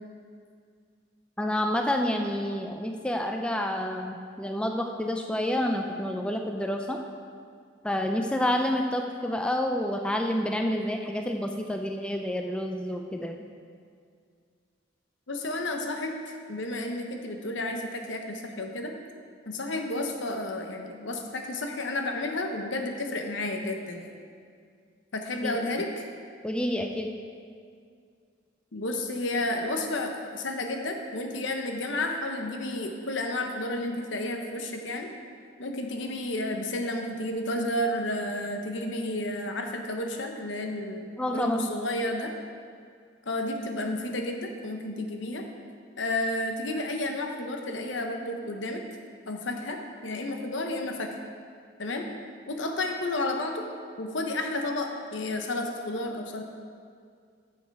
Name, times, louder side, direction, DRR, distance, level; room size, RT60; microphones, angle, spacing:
voice 1, 1.4-7.0 7.8-13.4 25.4-25.6 26.4-27.1 41.2-41.7, left 1 dB, 5° left, 3 dB, 0.4 m, -28 dB
voice 2, 15.3-18.9 19.5-24.1 25.1-26.1 28.7-35.1 35.6-42.3 43.3-45.5 46.0-48.8 49.3-51.1 51.8-52.1 52.5-53.6 54.0-56.4, left 1 dB, 75° left, 3 dB, 0.9 m, -31 dB
9.3 x 6.8 x 4.7 m, 2.2 s
head